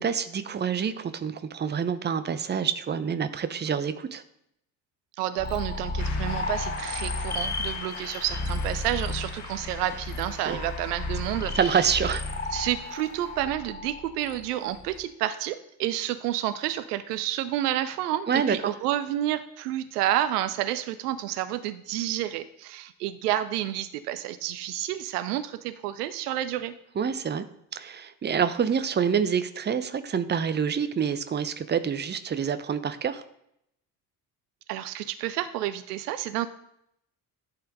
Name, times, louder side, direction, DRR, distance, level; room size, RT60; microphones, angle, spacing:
voice 1, 0.0-4.2 10.5-10.6 11.5-12.2 18.3-18.6 27.0-27.4 27.7-33.2, right 7 dB, 20° right, 11 dB, 0.7 m, -27 dB
voice 2, 5.2-11.9 12.5-26.7 34.7-36.5, right 12 dB, 70° right, 13 dB, 0.6 m, -30 dB
sound 1, 5.4-15.0, left 2 dB, 20° left, 1.1 m, -33 dB
Shout / Cheering / Applause, 6.0-13.4, left 5 dB, 60° left, 1.6 m, -43 dB
10.5 x 5.7 x 3.9 m, 0.77 s
figure-of-eight pair, 45°, 49 cm